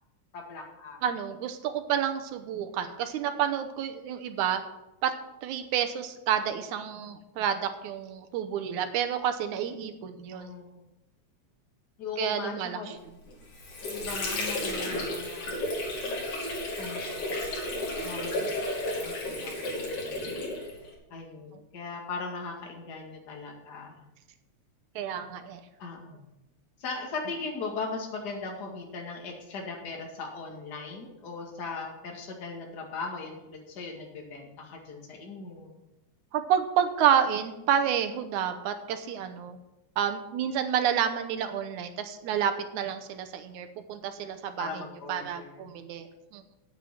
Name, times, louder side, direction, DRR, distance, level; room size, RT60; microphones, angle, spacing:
voice 1, 0.3-1.0 10.3-10.8 12.0-12.9 13.8-15.6 16.8-17.5 18.0-20.7 21.1-24.0 25.8-26.3 26.8-35.8 44.6-45.6, left 4 dB, 35° left, 0 dB, 2.2 m, -39 dB
voice 2, 1.0-4.6 5.0-5.1 5.4-10.5 12.2-13.0 18.4-18.5 21.5-21.6 25.0-25.6 36.3-39.6 40.0-44.8 45.1-46.6, right 9 dB, 80° right, 8 dB, 2.2 m, -29 dB
Water / Sink (filling or washing), 13.3-20.9, left 1 dB, 85° left, 4.1 m, -33 dB
9.1 x 8.5 x 5.7 m, 0.96 s
omnidirectional pair, 3.5 m